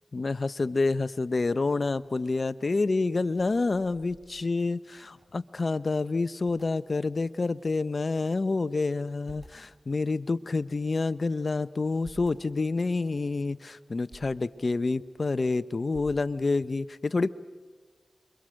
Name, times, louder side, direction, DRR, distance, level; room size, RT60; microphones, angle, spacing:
voice 1, 0.1-17.3, left 3 dB, 55° left, 14 dB, 0.8 m, -28 dB
sound 1, 2.8-5.5 5.8-5.9 6.1-6.7 7.4-8.5 8.9-9.7 10.2-11.2 11.7-12.4 12.9-13.4 13.9-14.3 14.8-15.5 15.9-16.6, right 2 dB, 35° right, 7.4 m, -54 dB
28.0 x 23.5 x 6.4 m, 1.4 s
cardioid pair, 40°, 0 cm